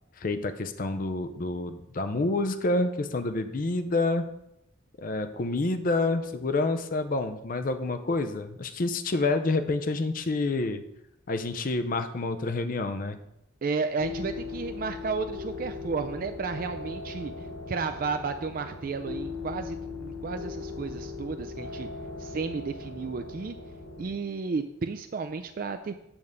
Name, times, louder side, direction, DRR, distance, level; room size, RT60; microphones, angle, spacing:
voice 1, 0.2-4.2 5.0-10.8 11.3-13.2, left 2 dB, 45° left, 9 dB, 0.5 m, -28 dB
voice 2, 13.6-21.9 22.2-23.6 24.0-25.9, right 4 dB, 45° right, 8 dB, 0.4 m, -33 dB
sound 1, 14.0-24.1, left 4 dB, 85° left, 1.1 m, -39 dB
8.7 x 3.5 x 6.5 m, 0.83 s
head